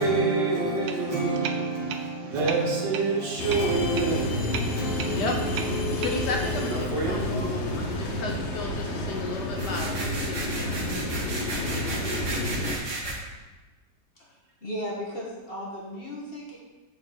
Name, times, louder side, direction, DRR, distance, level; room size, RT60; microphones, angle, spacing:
voice 1, 0.0-6.2 6.6-8.1, right 3 dB, 65° right, -1 dB, 2.0 m, -28 dB
sound 1, 0.8-6.3, right 7 dB, 85° right, 1.5 m, -39 dB
sound 2, 3.4-12.8, left 1 dB, 50° left, 0.9 m, -30 dB
voice 2, 5.1-10.9, left 3 dB, 65° left, 1 dB, 1.3 m, -34 dB
sound 3, 9.5-13.1, right 2 dB, 45° right, 1.5 m, -33 dB
voice 3, 14.2-16.6, equal, 30° left, -4 dB, 1.6 m, -36 dB
6.4 x 4.8 x 6.9 m, 1.2 s
omnidirectional pair, 2.1 m